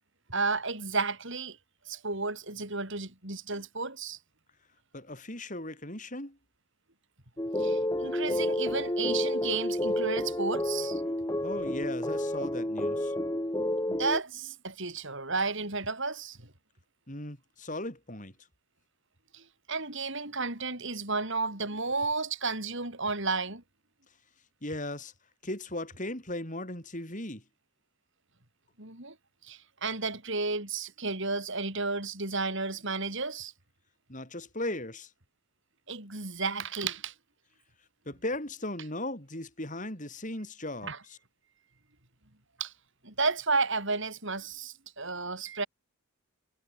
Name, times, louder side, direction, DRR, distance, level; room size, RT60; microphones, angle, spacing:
voice 1, 0.3-1.6 1.9-4.2 7.6-11.0 13.9-16.5 19.3-23.6 28.8-29.2 29.4-33.5 35.9-37.1 40.8-41.0 42.6-42.7 43.0-45.7, right 4 dB, 55° right, 6.3 m, -32 dB
voice 2, 4.9-6.4 11.4-13.1 17.1-18.3 24.6-25.1 25.4-27.4 34.1-35.1 38.1-40.9, left 1 dB, 35° left, 7.3 m, -37 dB
sound 1, 7.4-14.2, left 1 dB, 15° left, 1.6 m, -30 dB
head